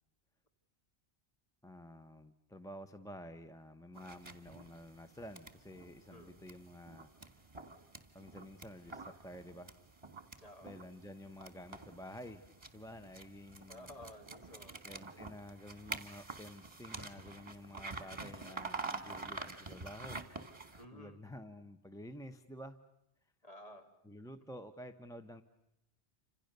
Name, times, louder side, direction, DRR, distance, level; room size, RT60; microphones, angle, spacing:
voice 1, 1.6-7.1 8.1-9.8 10.6-12.4 12.7-13.9 14.8-20.2 20.9-22.8 24.0-25.4, equal, 5° left, 9 dB, 0.9 m, -50 dB
sound 1, 3.9-20.9, right 3 dB, 25° right, 1.7 m, -48 dB
voice 2, 10.4-10.8 13.7-14.7 15.1-15.4 20.8-21.2 23.4-23.9, left 1 dB, 35° left, 3 dB, 2.9 m, -53 dB
29.5 x 26.5 x 6.8 m, 0.83 s
omnidirectional pair, 1.1 m